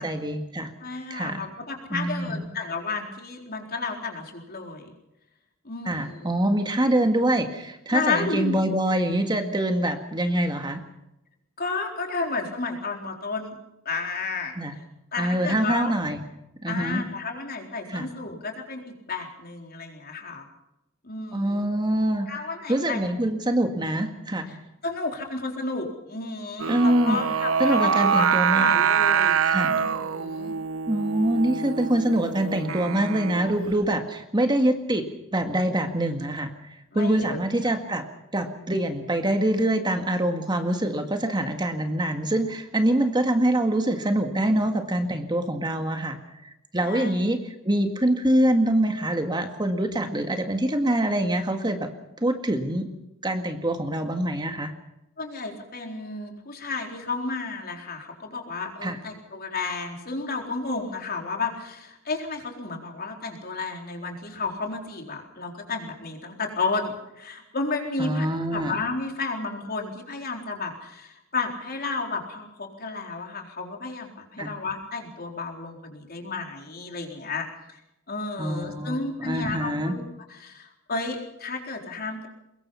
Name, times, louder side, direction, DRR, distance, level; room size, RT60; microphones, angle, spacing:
voice 1, 0.0-0.7 1.1-1.4 1.9-2.4 5.9-10.8 14.6-14.7 15.2-16.2 16.6-17.0 17.9-18.1 21.3-22.3 22.7-24.6 26.7-27.2 27.6-28.7 29.4-29.7 30.9-35.1 35.3-38.0 38.3-51.9 52.2-52.9 53.2-54.7 58.8-59.0 68.0-68.8 74.4-74.5 78.4-79.9, right 1 dB, 20° right, 5 dB, 1.9 m, -25 dB
voice 2, 0.8-4.9 5.6-6.4 7.9-8.6 11.6-13.6 13.8-14.8 15.1-15.9 16.7-20.5 21.0-21.7 22.3-23.0 24.5-24.6 24.8-30.5 36.9-37.4 37.6-37.7 46.8-47.2 55.2-68.3 68.5-77.8 78.1-80.0 80.3-82.3, left 3 dB, 50° left, 2 dB, 4.1 m, -32 dB
Singing, 26.6-33.7, right 7 dB, 80° right, 0.8 m, -25 dB
24.0 x 21.5 x 5.7 m, 0.90 s
head